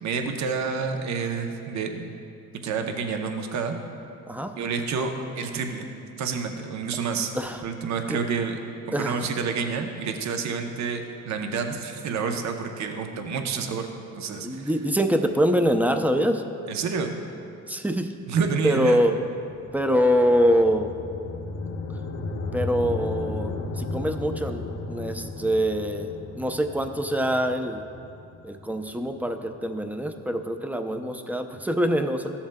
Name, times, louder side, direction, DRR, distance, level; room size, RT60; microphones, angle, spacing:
voice 1, 0.0-2.1 2.6-3.7 4.6-5.9 6.2-7.3 7.6-8.6 8.9-13.9 14.2-14.7 16.7-17.1 18.3-19.0, right 5 dB, 65° right, 5 dB, 0.8 m, -29 dB
voice 2, 8.9-9.3 14.4-16.4 17.7-18.1 18.6-19.1 19.7-20.9 22.5-27.8 28.4-32.3, equal, 5° right, 6 dB, 0.5 m, -24 dB
sound 1, 19.3-29.6, left 3 dB, 55° left, 0.8 m, -35 dB
13.5 x 7.1 x 2.2 m, 2.6 s
cardioid pair, 90°, 30 cm